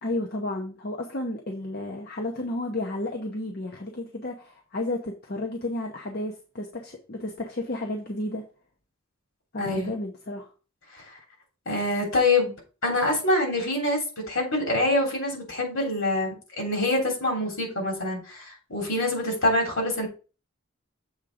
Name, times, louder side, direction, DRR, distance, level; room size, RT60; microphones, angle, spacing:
voice 1, 0.0-8.4 9.5-10.5, left 1 dB, 45° left, 0.8 m, -32 dB
voice 2, 9.6-9.9 10.9-11.0 11.6-12.5 12.8-20.1, left 2 dB, 65° left, 3.3 m, -25 dB
7.3 x 3.7 x 5.0 m
head